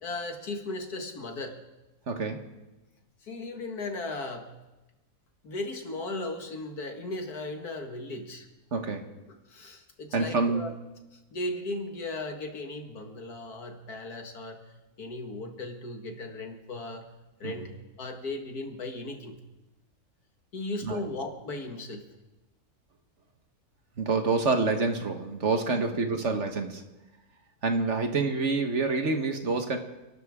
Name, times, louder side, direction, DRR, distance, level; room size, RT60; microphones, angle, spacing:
voice 1, 0.0-1.6 3.2-4.5 5.4-8.5 9.5-10.7 11.3-14.6 15.0-17.1 17.4-19.4 20.5-22.0 25.6-26.2, left 2 dB, 90° left, 4 dB, 2.3 m, -36 dB
voice 2, 2.1-2.5 8.7-9.1 10.1-10.7 17.4-17.6 20.8-21.0 24.0-26.8 27.6-29.8, right 3 dB, 50° right, 5 dB, 1.6 m, -27 dB
28.5 x 12.0 x 3.6 m, 1.1 s
omnidirectional pair, 1.6 m